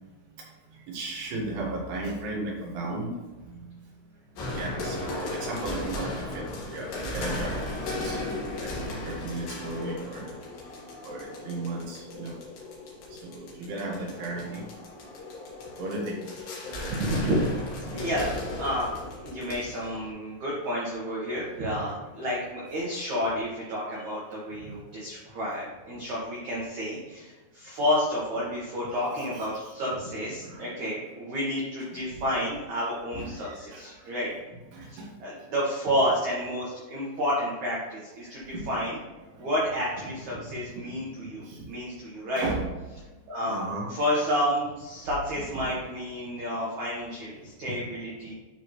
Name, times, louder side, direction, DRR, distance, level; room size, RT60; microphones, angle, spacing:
voice 1, 0.9-3.2 3.5-3.7 4.4-6.4 6.7-8.2 8.6-8.7 9.0-10.3 11.0-12.4 13.2-14.6 15.8-16.2 16.9-17.2 29.3-29.7 30.4-30.7 32.2-32.3 33.1-34.1 34.7-35.1 38.2-38.7 39.3-39.5 40.9-41.0 41.4-41.7 42.1-42.6 43.5-43.9 45.5-45.7, right 2 dB, 60° right, -2 dB, 3.2 m, -35 dB
sound 1, 4.4-20.1, left 1 dB, 60° left, 2.8 m, -36 dB
voice 2, 16.9-18.9 19.2-34.3 34.9-39.0 39.4-42.4 43.3-43.6 43.9-48.3, equal, 85° right, -5 dB, 1.6 m, -30 dB
12.0 x 4.1 x 3.2 m, 1.2 s
omnidirectional pair, 5.7 m